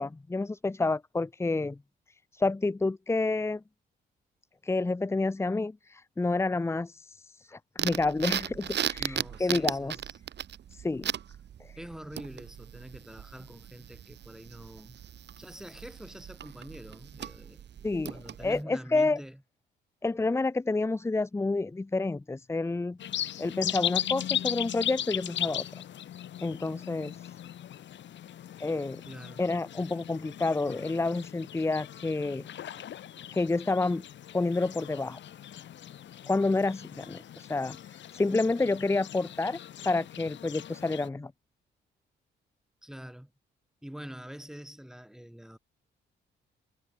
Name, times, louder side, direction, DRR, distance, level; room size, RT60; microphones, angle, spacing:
voice 1, 0.0-1.8 2.3-3.6 4.6-10.0 10.7-11.1 11.6-11.7 17.8-19.2 20.0-23.0 23.4-25.8 26.4-27.3 28.6-29.0 29.4-32.5 33.3-34.1 34.3-35.2 36.3-39.6 39.8-41.3, left 3 dB, 15° left, 0.7 m, -29 dB
sound 1, 7.8-18.6, right 9 dB, 60° right, 2.6 m, -37 dB
voice 2, 9.0-10.2 11.8-15.0 15.4-19.4 29.1-29.5 42.8-43.3 43.8-45.6, equal, 5° right, 3.9 m, -45 dB
sound 2, 23.0-41.1, left 11 dB, 65° left, 2.2 m, -38 dB
cardioid pair, 90°, 20 cm